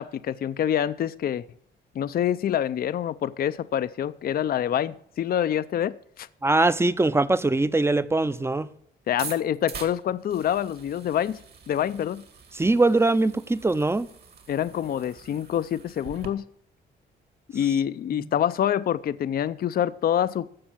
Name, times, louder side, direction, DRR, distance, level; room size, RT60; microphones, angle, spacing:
voice 1, 0.0-1.4 1.9-6.3 9.1-11.4 11.7-12.2 14.5-16.4 17.5-20.5, left 10 dB, 50° left, 0.5 m, -26 dB
voice 2, 6.4-8.7 12.5-14.1 18.2-18.3, right 2 dB, 15° right, 0.6 m, -22 dB
sound 1, 9.1-16.3, right 6 dB, 55° right, 2.2 m, -44 dB
14.0 x 5.4 x 8.9 m
cardioid pair, 90°, 20 cm